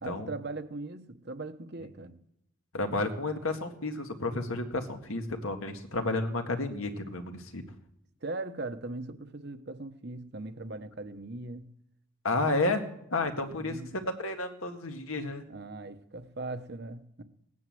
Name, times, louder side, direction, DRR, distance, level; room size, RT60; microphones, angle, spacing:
voice 1, 0.0-2.2 8.2-11.7 13.6-13.9 15.5-17.2, right 2 dB, 50° right, 1.0 m, -39 dB
voice 2, 2.7-7.6 12.2-12.9 13.1-15.4, left 2 dB, 80° left, 1.9 m, -31 dB
18.0 x 9.6 x 7.7 m
head